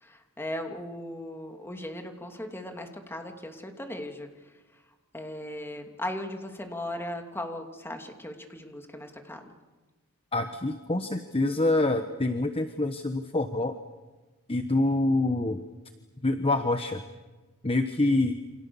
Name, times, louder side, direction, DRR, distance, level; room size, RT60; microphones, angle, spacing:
voice 1, 0.0-4.3 5.1-9.4, left 1 dB, 10° left, 4 dB, 2.7 m, -37 dB
voice 2, 10.3-13.8 14.5-15.6 16.2-17.0 17.6-18.4, left 2 dB, 25° left, 8 dB, 1.1 m, -26 dB
29.0 x 26.5 x 7.1 m, 1.2 s
head